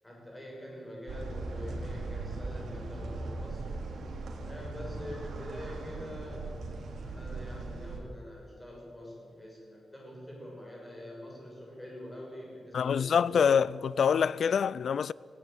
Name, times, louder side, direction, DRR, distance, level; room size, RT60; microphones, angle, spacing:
voice 1, 0.0-3.7 4.4-6.6 6.9-13.6, left 1 dB, 10° left, 6.5 m, -45 dB
sound 1, 1.1-8.0, right 3 dB, 70° right, 3.2 m, -39 dB
voice 2, 12.7-15.1, left 7 dB, 60° left, 0.4 m, -25 dB
18.0 x 17.0 x 9.1 m
wide cardioid pair, 175°, 0 cm